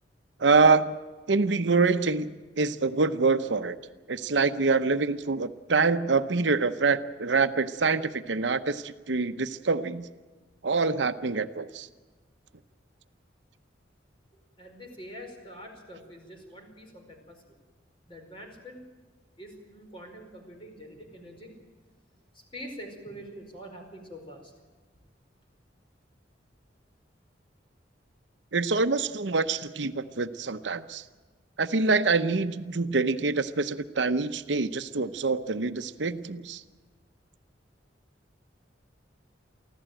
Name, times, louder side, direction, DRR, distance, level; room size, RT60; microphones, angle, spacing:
voice 1, 0.4-1.0 1.3-2.3 2.6-3.8 4.1-10.1 10.6-11.9 28.5-31.0 31.6-36.6, right 4 dB, 75° right, 11 dB, 0.8 m, -25 dB
voice 2, 14.6-17.4 18.1-18.8 19.4-21.5 22.5-24.5, equal, 30° left, 3 dB, 4.8 m, -45 dB
24.5 x 15.5 x 9.1 m, 1.3 s
head